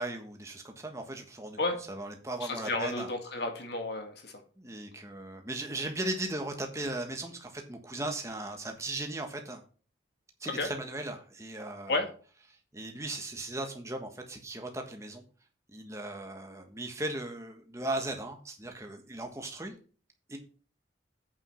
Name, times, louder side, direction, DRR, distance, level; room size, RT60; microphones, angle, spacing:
voice 1, 0.0-1.6 1.9-3.1 4.6-9.6 10.4-12.0 12.7-15.2 15.7-19.7 20.3-20.4, right 2 dB, 15° right, 3 dB, 1.4 m, -37 dB
voice 2, 2.4-4.3 10.6-10.7 11.9-12.1, left 2 dB, 55° left, 4 dB, 2.0 m, -32 dB
8.7 x 5.6 x 5.6 m, 0.40 s
head